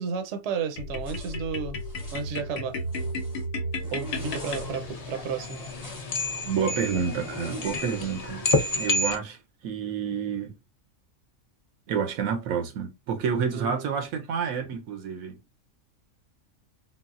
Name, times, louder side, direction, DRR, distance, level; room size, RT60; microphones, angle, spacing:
voice 1, 0.0-1.8 2.1-2.8 3.9-5.6 13.5-14.0, right 6 dB, 60° right, 0.9 m, -32 dB
sound 1, 0.8-5.2, left 1 dB, 80° left, 1.1 m, -33 dB
Zipper (clothing), 1.0-1.4 1.8-2.3 2.7-3.4 3.8-4.7 5.4-6.2 7.0-8.0, equal, 15° left, 1.0 m, -42 dB
sound 2, 4.1-9.1, left 2 dB, 40° left, 0.5 m, -30 dB
voice 2, 6.4-8.5 8.7-9.4 9.6-10.5 11.9-15.4, right 6 dB, 85° right, 1.1 m, -29 dB
3.9 x 2.0 x 2.4 m
omnidirectional pair, 1.4 m